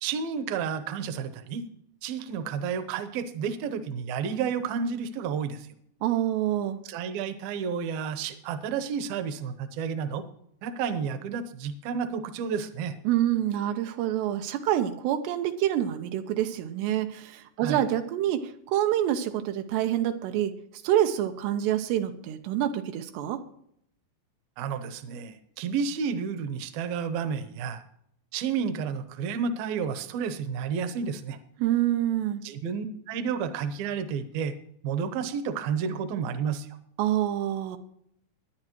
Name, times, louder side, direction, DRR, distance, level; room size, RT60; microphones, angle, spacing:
voice 1, 0.0-1.7 2.0-5.7 6.9-10.2 10.6-13.0 17.6-17.8 24.6-27.8 28.3-31.4 32.4-34.5 34.8-36.7, right 6 dB, 70° right, 10 dB, 2.5 m, -31 dB
voice 2, 6.0-6.8 13.1-20.5 20.8-23.4 31.6-32.4 37.0-37.8, right 12 dB, 90° right, 7 dB, 2.9 m, -27 dB
20.5 x 9.8 x 3.0 m, 0.70 s
omnidirectional pair, 4.9 m